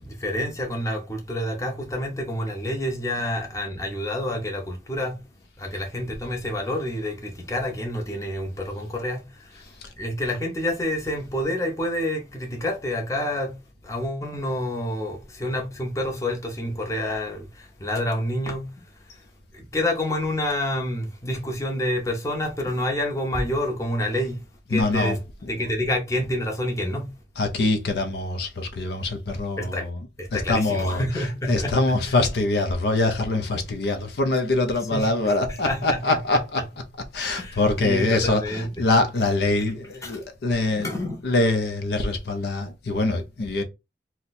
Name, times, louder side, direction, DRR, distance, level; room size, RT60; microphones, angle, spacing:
voice 1, 0.0-5.2 5.6-9.6 10.0-13.6 13.8-18.8 19.5-24.4 24.7-25.2 25.5-27.1 29.6-29.9 30.2-31.8 34.9-35.1 35.6-36.0 37.2-38.7 40.0-40.2 40.8-41.2, left 1 dB, 15° left, 0.7 m, -28 dB
voice 2, 9.6-9.9 24.7-25.7 27.4-36.6 37.1-40.9 41.2-43.6, left 2 dB, 65° left, 0.5 m, -24 dB
2.6 x 2.1 x 4.0 m
head